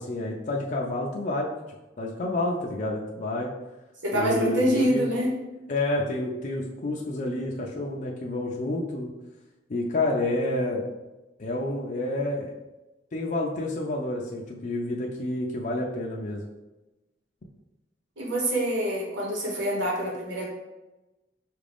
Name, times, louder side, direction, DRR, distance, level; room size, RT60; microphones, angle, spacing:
voice 1, 0.0-1.5 2.0-3.5 4.1-5.1 5.7-9.1 9.7-10.9 11.4-12.5 13.1-16.4, left 2 dB, 45° left, -2 dB, 0.5 m, -29 dB
voice 2, 4.0-5.3 18.2-20.5, equal, 90° right, -2 dB, 1.2 m, -26 dB
5.5 x 2.5 x 3.4 m, 1.0 s
head